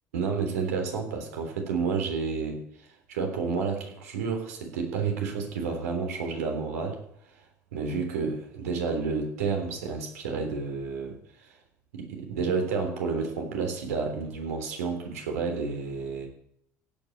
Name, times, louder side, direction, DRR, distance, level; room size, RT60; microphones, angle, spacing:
voice 1, 0.1-7.0 7.7-11.2 11.9-16.3, right 5 dB, 80° right, 3 dB, 3.5 m, -30 dB
16.0 x 6.2 x 9.3 m, 0.71 s
hypercardioid pair, 70°, 8 cm